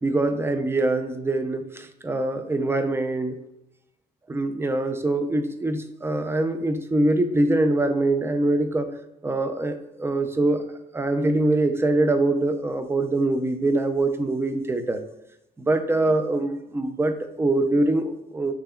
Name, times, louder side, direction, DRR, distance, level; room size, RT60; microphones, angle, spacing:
voice 1, 0.0-3.4 4.3-8.9 9.2-10.6 10.9-15.0 15.6-18.5, right 2 dB, 10° right, 8 dB, 0.4 m, -23 dB
5.9 x 3.5 x 2.3 m, 0.85 s
cardioid pair, 90°, 20 cm